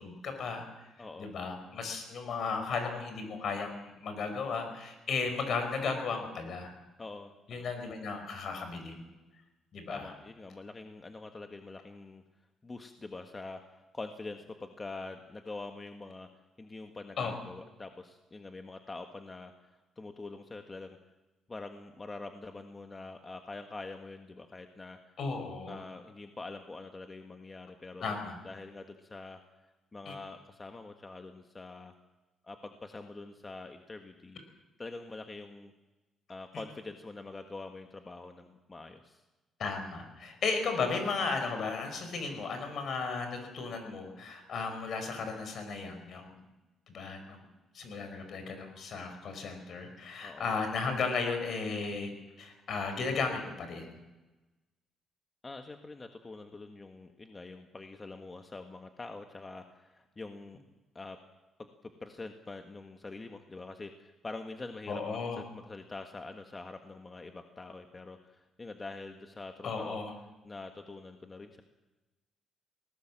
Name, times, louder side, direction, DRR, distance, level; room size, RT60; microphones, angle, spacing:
voice 1, 0.0-0.9 1.2-6.7 7.5-9.0 9.7-10.0 17.2-17.3 25.2-25.8 28.0-28.4 30.1-30.2 39.6-46.4 46.9-47.5 47.7-52.1 52.4-54.0 64.9-65.4 69.6-70.1, left 4 dB, 60° left, 6 dB, 5.4 m, -35 dB
voice 2, 1.0-1.3 7.0-7.6 9.9-12.2 12.6-13.6 13.9-16.3 16.6-21.0 21.5-25.0 25.7-28.2 28.4-29.4 29.9-31.9 32.4-34.4 34.8-35.7 36.3-39.2 50.2-50.5 55.4-60.6 60.9-61.2 61.6-61.7 62.0-70.0 70.4-71.6, left 3 dB, 25° left, 5 dB, 1.6 m, -45 dB
20.5 x 18.5 x 7.5 m, 1.1 s
cardioid pair, 90°, 0 cm